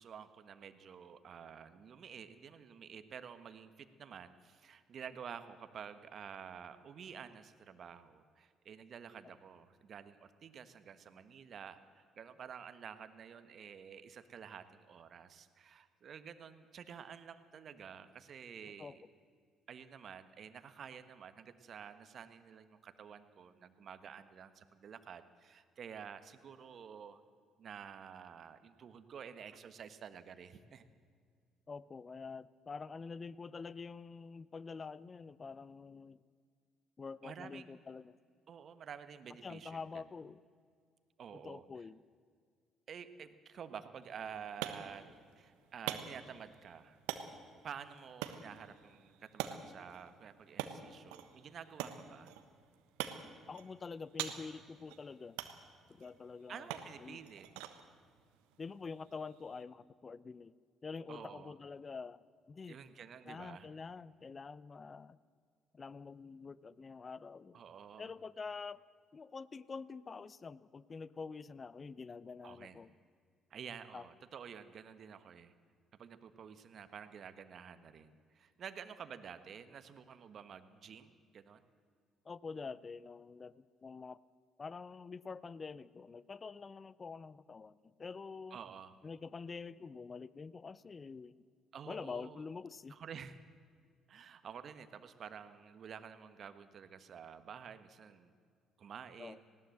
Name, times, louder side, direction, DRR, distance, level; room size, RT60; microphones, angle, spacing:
voice 1, 0.0-19.0 19.7-27.2 27.6-30.8 37.2-37.8 38.5-40.0 41.2-41.6 42.9-45.1 45.4-47.0 47.6-52.3 56.5-57.5 61.1-61.5 62.7-63.7 67.5-68.1 72.4-72.8 73.5-75.5 75.9-81.6 88.5-88.9 91.7-92.4 92.9-93.4 94.1-98.3 98.8-99.5, right 7 dB, 55° right, 11 dB, 1.4 m, -50 dB
voice 2, 31.7-36.2 37.0-38.2 39.4-40.4 41.3-42.0 53.5-55.4 55.9-57.2 58.6-60.5 60.8-62.8 63.3-65.2 65.7-67.6 68.0-68.8 69.1-72.9 73.9-74.1 82.2-84.2 84.6-88.6 89.0-91.4 91.9-93.0 99.2-99.4, left 4 dB, 35° left, 19 dB, 0.7 m, -47 dB
sound 1, 44.0-59.6, right 11 dB, 80° right, 1.2 m, -47 dB
19.5 x 17.0 x 7.9 m, 2.1 s
hypercardioid pair, 55°, 0 cm